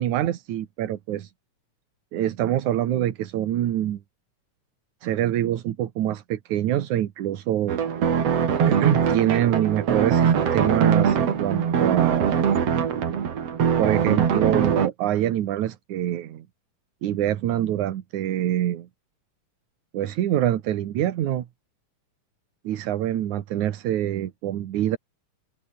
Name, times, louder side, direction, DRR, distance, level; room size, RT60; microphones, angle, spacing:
voice 1, 0.0-1.3 2.1-4.0 5.0-7.8 8.7-12.4 13.8-16.5 17.0-18.9 19.9-21.5 22.6-25.0, right 12 dB, 75° right, 2.7 m, -25 dB
sound 1, 7.7-14.9, right 7 dB, 55° right, 3.2 m, -22 dB
open air
omnidirectional pair, 3.5 m